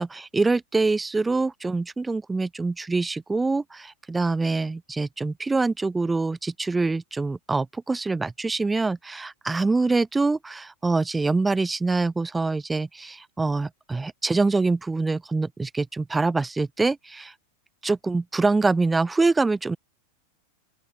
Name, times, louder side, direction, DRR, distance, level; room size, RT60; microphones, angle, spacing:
voice 1, 0.0-17.3 17.8-19.8, right 3 dB, 10° right, 0.9 m, -25 dB
open air
figure-of-eight pair, 90°, 0 cm